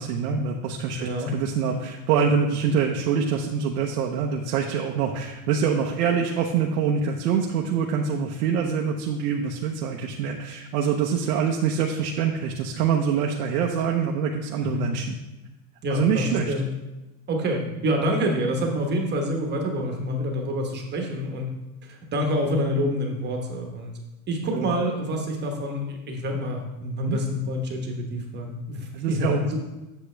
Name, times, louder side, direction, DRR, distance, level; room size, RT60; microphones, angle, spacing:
voice 1, 0.0-15.2 15.9-16.5 24.5-24.8 27.0-27.2 28.9-29.6, right 6 dB, 70° right, 0 dB, 0.9 m, -25 dB
voice 2, 1.0-1.3 14.7-14.9 15.8-16.7 17.3-21.5 21.9-23.9 24.3-29.6, equal, 20° right, 2 dB, 1.1 m, -27 dB
8.3 x 6.8 x 3.3 m, 1.0 s
supercardioid pair, 135°, 46 cm